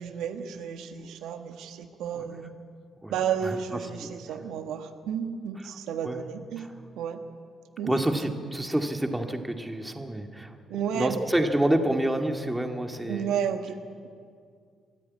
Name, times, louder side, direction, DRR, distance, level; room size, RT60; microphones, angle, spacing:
voice 1, 0.0-2.5 3.1-6.7 7.0-7.2 7.8-8.0 10.7-11.2 13.1-13.8, right 8 dB, 85° right, 7 dB, 1.4 m, -32 dB
voice 2, 3.0-3.6 3.9-4.1 5.6-5.7 6.0-6.2 6.6-6.7 7.8-10.6 10.9-13.3, right 1 dB, 10° right, 5 dB, 2.1 m, -28 dB
25.0 x 13.5 x 9.6 m, 2.2 s
cardioid pair, 90°, 0 cm